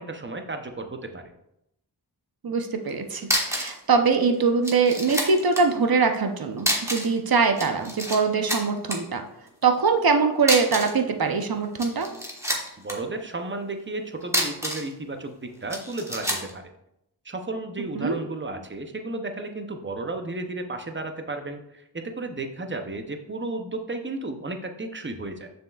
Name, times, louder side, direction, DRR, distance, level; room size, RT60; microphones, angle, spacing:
voice 1, 0.0-1.3 12.8-16.7 17.2-25.5, right 2 dB, 30° right, 6 dB, 0.7 m, -33 dB
voice 2, 2.4-9.2 9.6-12.1 18.0-18.2, right 4 dB, 60° right, 6 dB, 0.8 m, -23 dB
sound 1, 2.9-3.0 3.2-3.8 4.1-4.2 4.6-5.6 6.6-7.2 7.4-8.2 8.5-9.0 10.4-11.0 11.6-12.9 14.2-14.9 15.7-16.5, equal, 5° right, 1.3 m, -27 dB
6.9 x 6.4 x 2.4 m, 0.81 s
wide cardioid pair, 70°, 42 cm